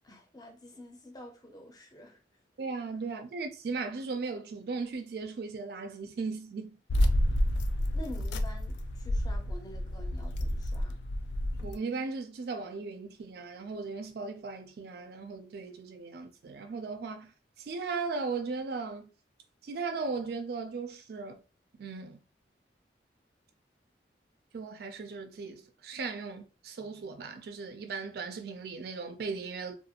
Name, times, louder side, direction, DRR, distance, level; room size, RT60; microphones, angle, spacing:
voice 1, 0.0-2.2 7.9-11.0, left 1 dB, 20° left, 0.6 m, -48 dB
voice 2, 2.6-6.8 11.6-17.3 17.6-19.1 19.6-21.4 21.8-22.2 24.5-29.8, right 4 dB, 60° right, 0.3 m, -37 dB
sound 1, 6.9-11.7, equal, 80° left, 0.4 m, -29 dB
2.4 x 2.4 x 2.8 m
head